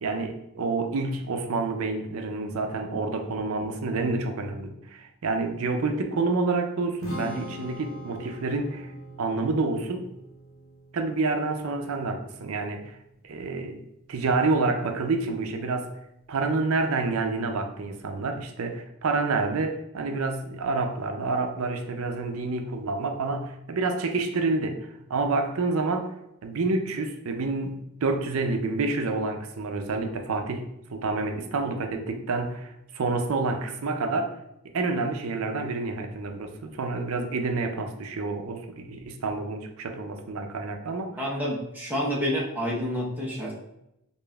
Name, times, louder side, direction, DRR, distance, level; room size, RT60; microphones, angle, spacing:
voice 1, 0.0-8.9 9.2-10.0 10.9-12.9 13.2-13.8 14.1-16.0 16.3-26.1 26.4-34.4 34.6-41.2, right 3 dB, 80° right, 5 dB, 0.5 m, -28 dB
Strum, 7.0-13.3, equal, 85° left, 0.8 m, -41 dB
voice 2, 41.2-43.5, equal, 10° right, -5 dB, 0.9 m, -28 dB
5.0 x 2.5 x 2.3 m, 0.85 s
head